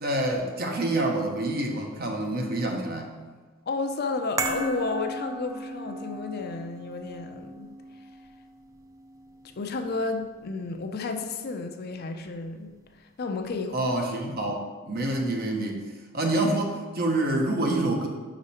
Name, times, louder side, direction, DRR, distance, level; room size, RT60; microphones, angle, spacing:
voice 1, 0.0-3.1 13.7-15.8 16.1-18.1, right 1 dB, 50° right, 2 dB, 0.9 m, -27 dB
voice 2, 3.7-7.7 9.6-12.7 13.2-13.8, left 3 dB, 50° left, 6 dB, 0.5 m, -32 dB
sound 1, 4.4-10.8 11.1-11.2, right 2 dB, 15° right, 0.4 m, -37 dB
5.9 x 5.0 x 4.2 m, 1.4 s
head